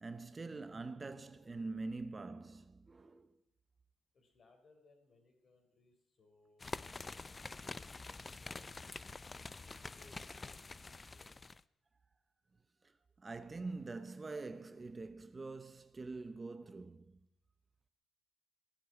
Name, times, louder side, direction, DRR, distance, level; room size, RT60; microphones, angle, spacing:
voice 1, 0.0-3.3 13.2-17.2, right 3 dB, 25° right, 0.8 m, -45 dB
voice 2, 4.1-8.7 9.2-11.3, left 3 dB, 45° left, 3.8 m, -68 dB
sound 1, 6.6-11.6, left 3 dB, 25° left, 0.5 m, -47 dB
15.5 x 7.9 x 9.5 m
cardioid pair, 90°, 0 cm